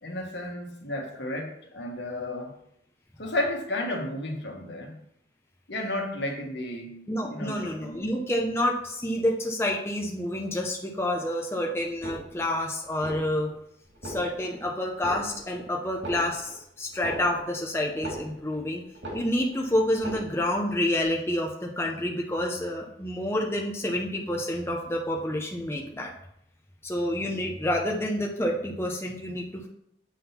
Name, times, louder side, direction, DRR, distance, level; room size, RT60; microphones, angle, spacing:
voice 1, 0.0-2.5 3.2-5.0 5.7-7.0 7.3-8.0, left 1 dB, 75° left, 2 dB, 1.4 m, -32 dB
voice 2, 7.1-13.5 14.0-18.8 19.1-26.1 26.8-29.7, left 1 dB, 15° left, 0 dB, 0.8 m, -28 dB
sound 1, 11.9-12.6 12.9-13.6 13.9-14.6 14.9-15.6 15.9-18.6 18.9-19.6 19.9-20.6 20.9-21.0, right 1 dB, 85° right, 2.3 m, -40 dB
7.7 x 3.8 x 5.6 m, 0.71 s
head